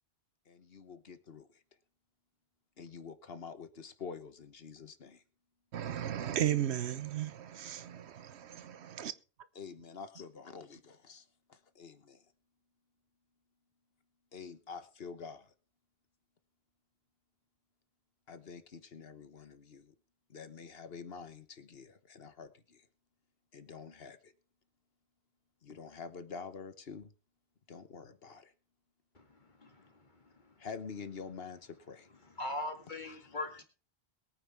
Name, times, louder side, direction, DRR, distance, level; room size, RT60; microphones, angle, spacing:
voice 1, 0.5-1.5 2.8-5.2 9.5-12.2 14.3-15.5 18.3-19.9 20.3-22.8 23.5-24.3 25.6-27.1 27.7-28.5 30.6-32.1 33.1-33.3, left 5 dB, 65° left, 1.3 m, -47 dB
voice 2, 5.7-9.1, right 10 dB, 85° right, 1.1 m, -35 dB
voice 3, 29.2-29.9 32.2-33.6, left 2 dB, 45° left, 2.3 m, -41 dB
22.0 x 9.4 x 3.5 m
omnidirectional pair, 1.1 m